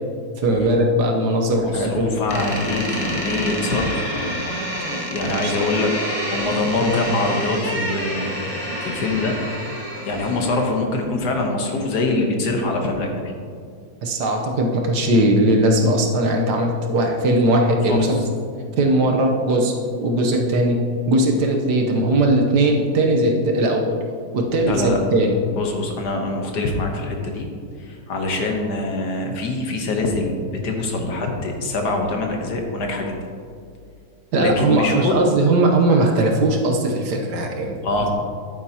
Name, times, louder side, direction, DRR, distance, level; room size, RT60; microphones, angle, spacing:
voice 1, 0.4-2.2 5.2-5.5 14.0-18.3 18.8-24.0 24.3-25.4 34.3-37.8, right 1 dB, 65° right, 2 dB, 1.4 m, -19 dB
voice 2, 1.5-4.1 5.1-8.4 8.8-9.4 10.1-13.3 17.9-18.1 24.7-25.0 25.5-27.5 27.8-30.3 30.6-33.2 34.4-35.3 37.8-38.1, left 2 dB, 65° left, 2 dB, 1.5 m, -24 dB
Door, 2.3-10.8, equal, 25° left, 0.7 m, -28 dB
10.0 x 9.2 x 2.8 m, 2.2 s
omnidirectional pair, 2.1 m